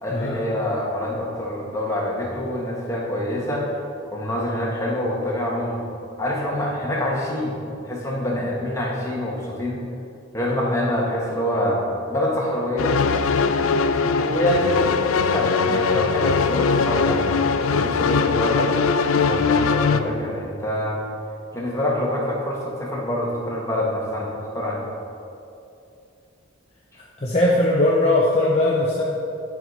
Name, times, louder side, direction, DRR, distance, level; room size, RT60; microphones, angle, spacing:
voice 1, 0.0-3.8 4.1-5.9 6.2-7.6 7.9-9.8 10.3-11.8 12.1-13.0 14.0-14.9 15.2-18.7 19.2-21.0 21.5-24.8, left 1 dB, 15° left, -4 dB, 1.4 m, -26 dB
sound 1, 12.8-20.0, left 5 dB, 85° left, 0.4 m, -21 dB
voice 2, 27.0-29.0, left 1 dB, 30° left, -4 dB, 0.7 m, -20 dB
11.0 x 4.8 x 5.3 m, 2.6 s
head